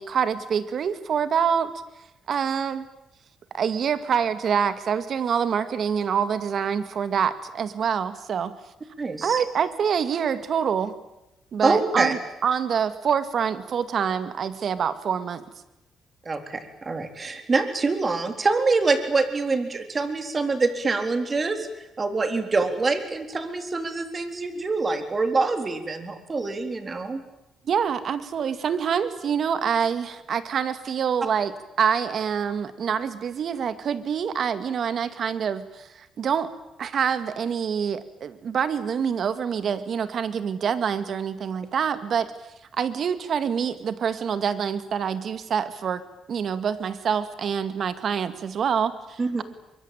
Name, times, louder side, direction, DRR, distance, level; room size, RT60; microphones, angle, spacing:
voice 1, 0.0-1.7 2.3-2.9 3.5-8.5 9.2-10.9 11.5-15.4 27.7-36.5 36.8-42.3 42.8-46.0 46.3-49.4, right 7 dB, 60° right, 12 dB, 2.1 m, -26 dB
voice 2, 9.0-9.4 11.6-12.1 16.3-21.7 22.0-27.2 49.2-49.4, right 3 dB, 30° right, 7 dB, 3.9 m, -25 dB
24.0 x 23.5 x 9.0 m, 0.92 s
cardioid pair, 90°, 0 cm